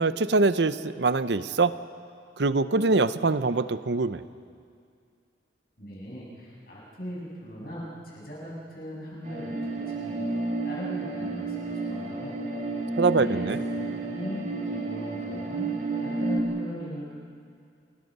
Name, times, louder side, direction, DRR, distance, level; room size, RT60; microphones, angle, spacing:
voice 1, 0.0-1.7 2.4-4.2 13.0-13.6, right 3 dB, 70° right, 13 dB, 0.7 m, -23 dB
voice 2, 5.8-10.3 10.6-12.4 13.1-17.1, equal, 55° left, -5 dB, 7.8 m, -39 dB
sound 1, 9.2-16.4, right 3 dB, 40° right, 2.6 m, -31 dB
29.5 x 21.5 x 5.5 m, 2.3 s
head